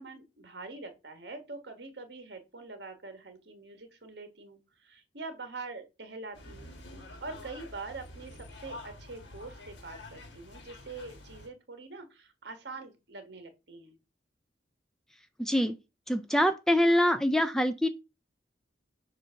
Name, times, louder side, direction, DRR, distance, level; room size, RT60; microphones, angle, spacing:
voice 1, 0.0-6.7 7.2-14.0, right 3 dB, 65° right, 1.3 m, -44 dB
sound 1, 6.3-11.5, left 2 dB, 75° left, 1.4 m, -48 dB
voice 2, 15.4-15.7 16.1-17.9, equal, 5° left, 0.3 m, -25 dB
7.4 x 2.6 x 5.6 m
head